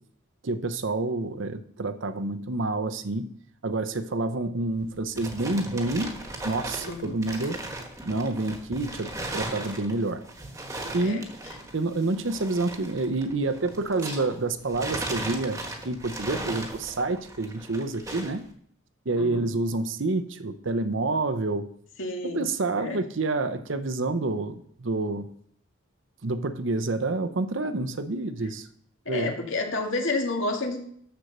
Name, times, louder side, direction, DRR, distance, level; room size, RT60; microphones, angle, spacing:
voice 1, 0.4-3.3 3.6-6.2 6.4-7.6 8.0-10.2 10.9-11.3 11.7-18.5 19.1-21.7 22.2-25.3 26.2-28.7 29.1-29.3, right 2 dB, 70° right, 0.8 m, -28 dB
sound 1, 4.8-14.4 14.7-18.4, right 2 dB, 15° right, 1.3 m, -37 dB
voice 2, 6.8-7.2 11.0-11.6 19.1-19.4 22.0-22.4 22.8-23.0 29.1-30.8, left 2 dB, 75° left, 2.1 m, -30 dB
13.0 x 4.5 x 6.6 m
head